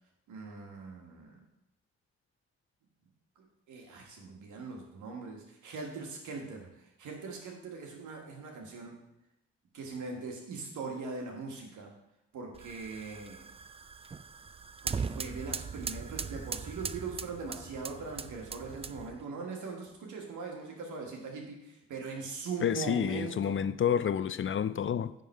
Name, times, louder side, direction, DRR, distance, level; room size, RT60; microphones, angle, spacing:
voice 1, 0.3-1.4 3.7-9.0 9.7-11.9 12.3-13.5 14.8-23.6, right 4 dB, 90° right, 1.5 m, -41 dB
sound 1, 12.5-19.2, right 5 dB, 20° right, 0.3 m, -40 dB
voice 2, 22.6-25.1, left 8 dB, 45° left, 0.4 m, -29 dB
9.4 x 3.7 x 5.3 m
supercardioid pair, 45°, 29 cm